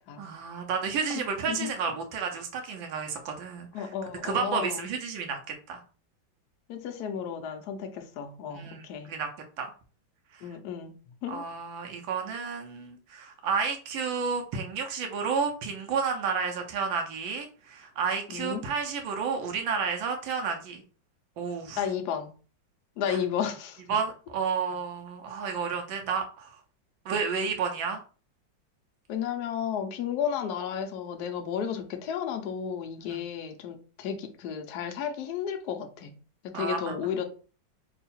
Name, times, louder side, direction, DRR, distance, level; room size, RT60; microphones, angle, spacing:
voice 1, 0.2-3.9 4.2-5.8 8.5-9.3 9.6-9.7 11.3-20.8 21.4-21.8 23.1-23.2 23.9-26.5 27.0-28.0 33.0-33.2 36.5-37.0, right 5 dB, 80° right, 3 dB, 1.4 m, -31 dB
voice 2, 3.7-4.9 6.7-9.1 10.4-10.9 11.2-11.4 18.3-18.6 21.8-22.3 23.0-23.8 29.1-36.1 36.5-37.3, left 8 dB, 70° left, 5 dB, 1.1 m, -33 dB
3.7 x 2.3 x 4.2 m, 0.38 s
omnidirectional pair, 2.1 m